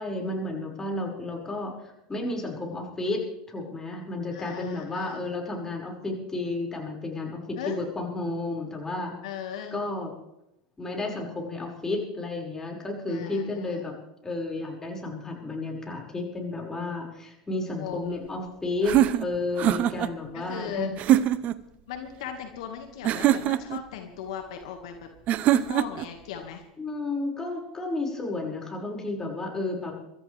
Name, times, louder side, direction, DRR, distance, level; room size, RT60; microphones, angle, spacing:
voice 1, 0.0-1.7 2.1-9.1 9.7-10.1 10.8-13.9 14.2-20.9 26.8-30.0, left 2 dB, 15° left, 0 dB, 5.8 m, -32 dB
voice 2, 4.3-5.3 7.6-7.9 9.2-9.8 13.1-13.8 17.8-18.3 18.9-19.1 20.3-20.9 21.9-25.1 25.5-26.6, left 9 dB, 70° left, 5 dB, 2.0 m, -37 dB
sound 1, 18.8-20.1 21.0-21.6 23.0-23.8 25.3-26.1, right 13 dB, 45° right, 0.8 m, -23 dB
25.0 x 13.5 x 3.5 m, 0.86 s
hypercardioid pair, 90°, 3 cm